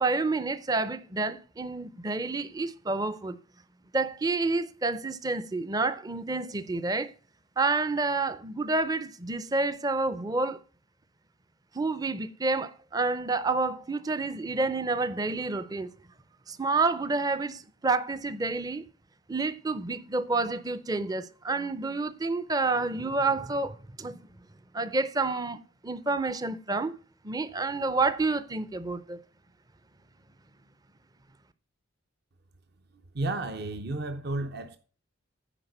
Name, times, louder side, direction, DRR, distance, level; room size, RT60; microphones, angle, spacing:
voice 1, 0.0-3.4 3.9-7.1 7.6-10.6 11.7-15.9 16.5-18.8 19.3-24.2 24.7-25.6 25.8-26.9 27.2-29.2, right 3 dB, 20° right, 0.5 m, -29 dB
voice 2, 33.1-34.8, right 2 dB, 50° right, 0.7 m, -32 dB
10.0 x 4.8 x 6.7 m
head